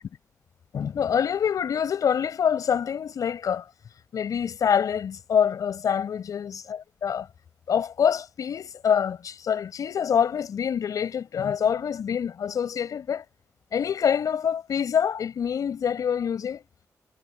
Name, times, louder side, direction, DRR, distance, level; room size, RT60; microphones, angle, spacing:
voice 1, 0.7-3.7 4.1-7.3 7.7-13.2 13.7-16.6, left 8 dB, 75° left, 5.5 m, -26 dB
cardioid pair, 70°, 6 cm